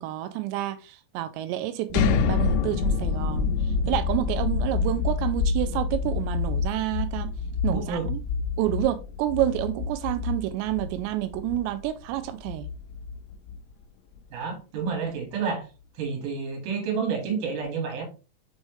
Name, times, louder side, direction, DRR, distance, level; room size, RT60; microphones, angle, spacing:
voice 1, 0.0-3.5 3.9-7.3 7.6-8.2 8.6-12.7, right 14 dB, 85° right, 2.8 m, -29 dB
sound 1, 1.9-13.7, left 5 dB, 85° left, 2.7 m, -27 dB
voice 2, 7.7-8.1 14.3-15.7 16.0-18.0, right 5 dB, 55° right, 3.1 m, -29 dB
6.4 x 4.8 x 3.1 m
omnidirectional pair, 5.2 m